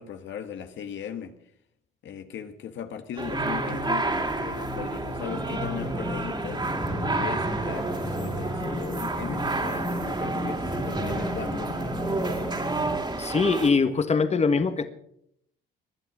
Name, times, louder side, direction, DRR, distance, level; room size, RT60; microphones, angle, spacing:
voice 1, 0.0-1.4 2.0-6.7 7.1-11.9, left 8 dB, 70° left, 7 dB, 1.6 m, -38 dB
sound 1, 3.2-13.7, right 2 dB, 25° right, 2.8 m, -30 dB
sound 2, 5.3-13.0, left 1 dB, 10° left, 2.4 m, -34 dB
voice 2, 13.2-14.9, left 4 dB, 35° left, 9 dB, 1.6 m, -22 dB
20.5 x 11.0 x 6.2 m, 0.73 s
cardioid pair, 90°, 20 cm